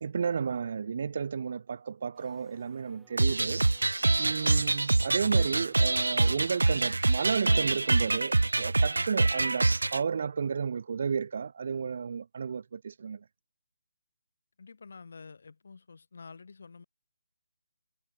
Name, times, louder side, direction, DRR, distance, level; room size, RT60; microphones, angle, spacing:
voice 1, 0.0-3.6 4.2-13.2, right 6 dB, 50° right, 2.0 m, -32 dB
sound 1, 2.1-6.7, right 7 dB, 5° right, 5.0 m, -64 dB
sound 2, 3.2-10.0, right 2 dB, 85° right, 0.5 m, -25 dB
voice 2, 14.6-16.8, left 4 dB, 60° left, 5.0 m, -49 dB
figure-of-eight pair, 155°, 0 cm